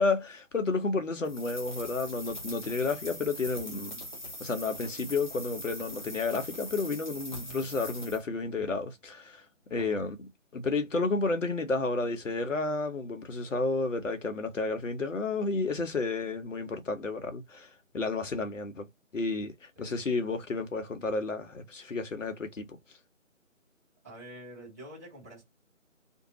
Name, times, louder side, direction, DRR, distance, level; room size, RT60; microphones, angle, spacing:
voice 1, 0.0-3.9 4.4-9.4 9.7-10.2 10.5-18.9 19.1-22.7, left 3 dB, 65° left, 0.8 m, -31 dB
sound 1, 1.2-8.2, left 1 dB, 35° left, 0.6 m, -42 dB
voice 2, 7.3-7.7 9.7-10.1 19.8-20.0 24.0-25.4, right 1 dB, 10° right, 1.1 m, -48 dB
2.6 x 2.2 x 2.9 m
figure-of-eight pair, 160°, 41 cm